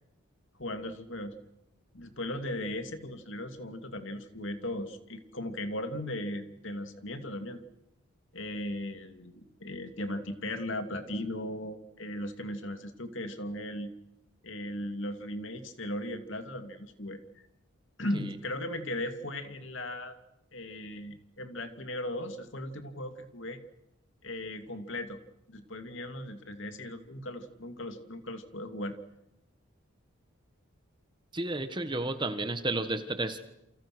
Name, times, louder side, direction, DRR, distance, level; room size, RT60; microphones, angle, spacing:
voice 1, 0.6-1.4 1.9-7.6 8.3-13.9 14.4-17.2 18.0-20.1 20.5-23.6 24.2-25.2 25.5-28.9, left 1 dB, 60° left, 7 dB, 2.7 m, -37 dB
voice 2, 31.3-33.4, right 2 dB, 20° right, 9 dB, 1.6 m, -32 dB
29.0 x 28.5 x 6.3 m, 0.88 s
head